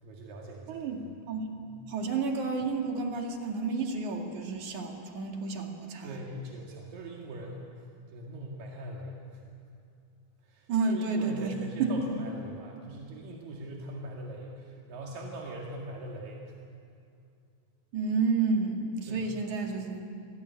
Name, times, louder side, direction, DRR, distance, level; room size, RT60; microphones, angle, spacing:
voice 1, 0.0-0.8 1.6-1.7 6.0-7.7 8.1-9.4 10.4-16.6 19.0-19.3, right 1 dB, 90° right, -2 dB, 3.9 m, -41 dB
voice 2, 0.7-1.4 1.9-6.2 10.7-12.1 17.9-20.0, right 4 dB, 65° right, 2 dB, 3.6 m, -30 dB
28.5 x 19.0 x 9.5 m, 2.5 s
omnidirectional pair, 3.8 m